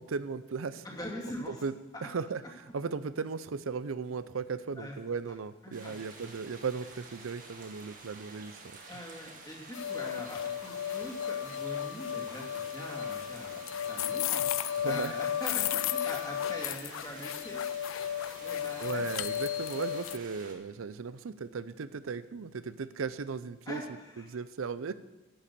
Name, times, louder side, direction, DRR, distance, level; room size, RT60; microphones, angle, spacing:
voice 1, 0.0-0.8 1.5-1.7 2.0-8.8 14.8-15.2 18.8-23.8 24.2-24.9, right 5 dB, 90° right, 15 dB, 0.5 m, -36 dB
voice 2, 0.8-1.6 4.8-4.9 5.6-6.0 8.9-17.6 18.4-19.1 23.7-24.4, left 1 dB, 20° left, -2 dB, 2.4 m, -42 dB
sound 1, 5.7-20.5, right 3 dB, 40° right, 1.9 m, -50 dB
sound 2, 9.7-20.2, left 10 dB, 80° left, 0.4 m, -34 dB
11.5 x 8.5 x 6.8 m, 1.0 s
head